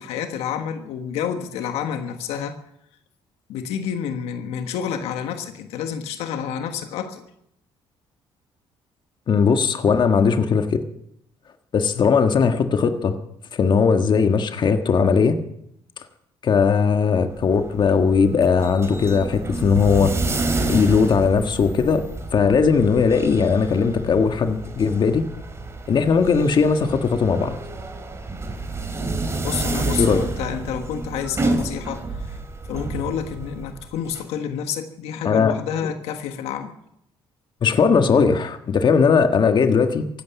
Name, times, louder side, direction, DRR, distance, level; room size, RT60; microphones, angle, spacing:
voice 1, 0.0-2.6 3.5-7.2 29.4-32.3 32.7-36.7, left 8 dB, 90° left, 7 dB, 1.5 m, -29 dB
voice 2, 9.3-10.8 11.7-13.1 13.5-15.4 16.4-20.1 20.6-22.0 22.3-25.2 25.9-27.6 30.0-30.2 35.2-35.5 35.8-35.9 37.6-40.1, left 5 dB, 50° left, 7 dB, 1.6 m, -18 dB
sound 1, 17.2-34.2, right 2 dB, 25° right, 3.0 m, -29 dB
16.0 x 12.0 x 7.1 m, 0.76 s
cardioid pair, 95°, 10 cm